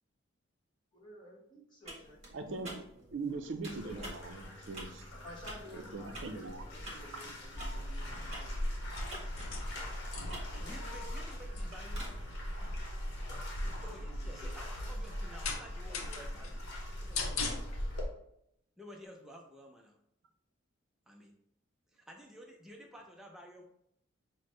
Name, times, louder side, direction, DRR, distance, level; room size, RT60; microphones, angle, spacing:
voice 1, 0.9-2.7 3.3-3.4 3.8-4.1 5.1-9.9 13.3-13.5 13.8-14.5, equal, 20° left, -4 dB, 1.0 m, -54 dB
sound 1, 1.8-12.1, right 1 dB, 30° right, 1.1 m, -50 dB
voice 2, 2.3-2.8 3.1-5.0 5.9-6.6 10.1-10.4 12.6-12.7, right 3 dB, 65° right, 7 dB, 0.5 m, -41 dB
Bathtub (filling or washing), 3.7-18.0, left 1 dB, 55° left, 0.9 m, -48 dB
sound 2, 7.6-18.1, left 1 dB, 85° left, 0.6 m, -38 dB
voice 3, 10.5-12.2 13.8-17.4 18.8-20.0 21.1-21.3 21.9-23.6, equal, ahead, 0 dB, 0.4 m, -52 dB
5.9 x 2.1 x 3.1 m, 0.76 s
head